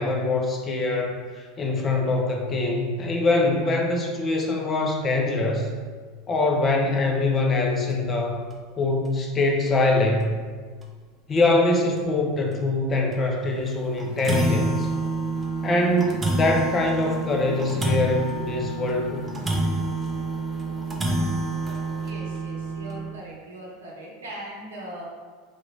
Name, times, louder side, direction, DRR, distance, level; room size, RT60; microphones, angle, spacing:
voice 1, 0.0-5.7 6.3-8.4 8.8-10.4 11.3-14.9 15.6-19.3, left 2 dB, 30° left, 1 dB, 0.6 m, -23 dB
sound 1, 7.9-8.1 8.5-8.6 9.1-9.2 10.2-10.3 10.8-10.9 11.4-11.5 12.0-12.1 13.1-13.3 13.7-13.8 14.0-23.1, right 2 dB, 20° right, 0.6 m, -28 dB
voice 2, 22.0-25.0, right 1 dB, 75° right, -3 dB, 0.8 m, -40 dB
3.7 x 3.1 x 2.5 m, 1.5 s
figure-of-eight pair, 80°, 0 cm